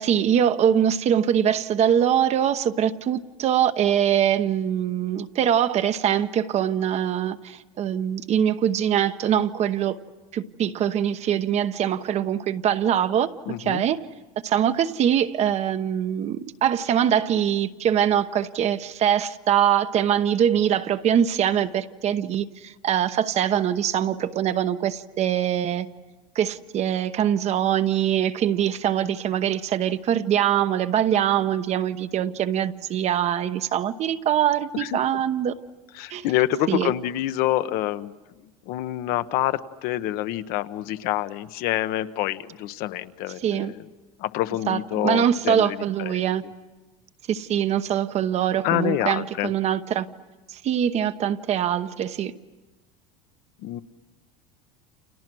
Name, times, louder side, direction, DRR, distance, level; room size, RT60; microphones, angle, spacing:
voice 1, 0.0-10.0 10.3-14.0 14.4-25.9 26.3-35.5 36.1-36.2 36.7-36.9 43.4-43.7 44.7-46.4 47.3-50.1 50.5-52.3, right 9 dB, 40° right, 11 dB, 1.0 m, -23 dB
voice 2, 13.5-13.8 34.7-35.0 35.9-38.1 38.4-43.8 44.2-46.3 48.6-49.5 53.6-53.8, left 14 dB, 60° left, 12 dB, 1.0 m, -27 dB
29.5 x 28.5 x 6.2 m, 1.2 s
supercardioid pair, 125°, 17 cm